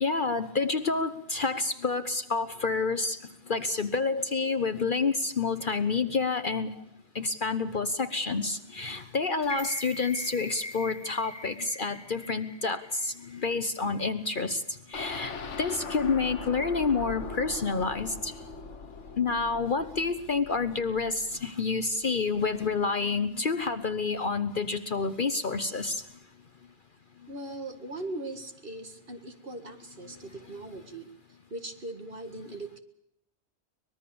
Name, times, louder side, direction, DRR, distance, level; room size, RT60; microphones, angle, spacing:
voice 1, 0.0-3.2 3.5-6.7 7.1-14.6 14.9-18.3 19.2-26.0, left 4 dB, 45° left, 10 dB, 1.1 m, -29 dB
sound 1, 9.4-13.6 13.9-14.0, left 2 dB, 20° left, 1.5 m, -42 dB
sound 2, 14.9-22.8 23.2-23.3 23.6-23.7, left 4 dB, 80° left, 1.5 m, -41 dB
voice 2, 27.3-31.1 31.5-32.8, right 2 dB, 50° right, 6 dB, 2.0 m, -40 dB
24.0 x 20.5 x 6.9 m, 0.75 s
omnidirectional pair, 1.2 m